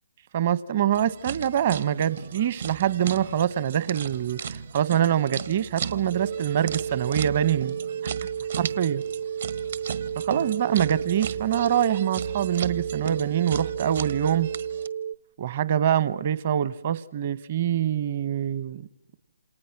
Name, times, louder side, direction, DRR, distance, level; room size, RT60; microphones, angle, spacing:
voice 1, 0.3-7.8 8.0-8.1 8.6-9.0 10.2-14.5 15.4-18.9, right 10 dB, 45° right, 18 dB, 1.1 m, -25 dB
sound 1, 0.9-14.9, right 7 dB, 60° right, 1.4 m, -36 dB
sound 2, 6.1-15.1, right 8 dB, 75° right, 1.2 m, -32 dB
28.5 x 27.5 x 6.0 m, 0.76 s
figure-of-eight pair, 145°, 0 cm